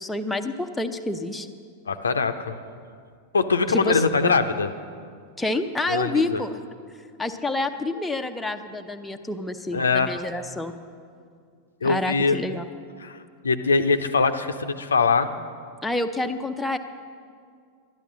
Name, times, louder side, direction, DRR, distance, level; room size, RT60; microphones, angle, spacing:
voice 1, 0.0-1.5 3.7-4.4 5.4-6.6 7.2-10.8 11.8-12.6 15.8-16.8, left 2 dB, 5° left, 5 dB, 0.6 m, -28 dB
voice 2, 1.9-2.6 3.3-4.7 5.9-6.4 9.7-10.2 11.8-12.4 13.0-15.3, left 4 dB, 70° left, 9 dB, 0.6 m, -22 dB
12.0 x 11.0 x 6.2 m, 2.2 s
figure-of-eight pair, 90°, 0 cm